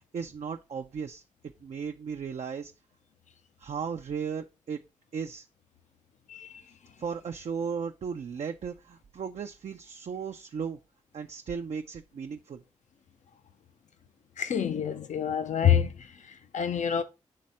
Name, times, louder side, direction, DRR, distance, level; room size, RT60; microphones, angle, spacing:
voice 1, 0.1-1.2 1.6-2.7 3.6-4.8 5.1-5.5 7.0-10.8 11.1-12.6, right 6 dB, 60° right, 0.5 m, -36 dB
voice 2, 14.4-16.1 16.5-17.0, left 8 dB, 70° left, 0.7 m, -26 dB
7.6 x 3.3 x 4.2 m
supercardioid pair, 45°, 13 cm